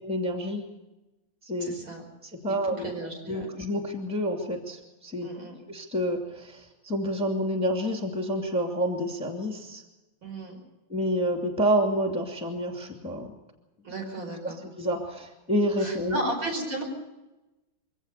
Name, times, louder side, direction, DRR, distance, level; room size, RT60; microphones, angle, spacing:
voice 1, 0.0-0.6 1.4-1.8 2.3-2.9 3.3-5.3 5.7-9.8 10.9-13.3 14.8-16.2, equal, 5° right, 3 dB, 2.6 m, -28 dB
voice 2, 1.6-2.0 2.6-3.5 5.2-5.6 10.2-10.6 13.8-14.6 15.8-16.8, right 1 dB, 70° right, 1 dB, 6.0 m, -34 dB
23.5 x 17.5 x 6.8 m, 1.0 s
omnidirectional pair, 2.2 m